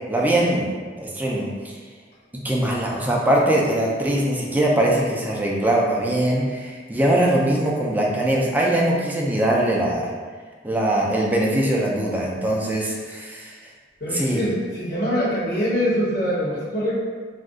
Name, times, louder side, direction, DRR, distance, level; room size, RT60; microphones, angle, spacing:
voice 1, 0.1-1.8 2.4-10.1 10.6-13.5 14.1-14.4, right 1 dB, 10° right, -3 dB, 0.4 m, -22 dB
voice 2, 14.0-16.9, equal, 55° left, -7 dB, 0.9 m, -24 dB
2.5 x 2.2 x 3.6 m, 1.5 s
head